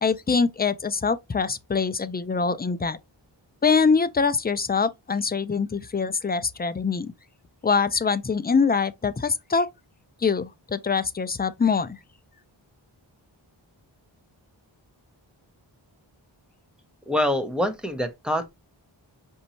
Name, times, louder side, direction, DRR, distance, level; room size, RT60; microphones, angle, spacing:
voice 1, 0.0-3.0 3.6-7.1 7.6-9.7 10.2-12.0, left 5 dB, 20° left, 0.4 m, -24 dB
voice 2, 17.1-18.5, left 1 dB, ahead, 0.8 m, -25 dB
5.2 x 2.7 x 2.9 m
wide cardioid pair, 45°, 47 cm